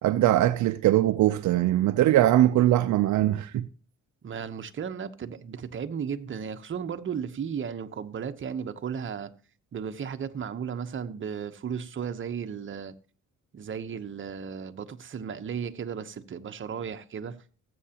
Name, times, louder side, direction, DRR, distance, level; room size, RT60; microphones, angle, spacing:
voice 1, 0.0-3.7, right 14 dB, 70° right, 0.5 m, -21 dB
voice 2, 4.2-9.3 9.7-12.9 13.5-17.4, right 7 dB, 40° right, 0.9 m, -35 dB
18.0 x 7.9 x 2.9 m
cardioid pair, 90°, 30 cm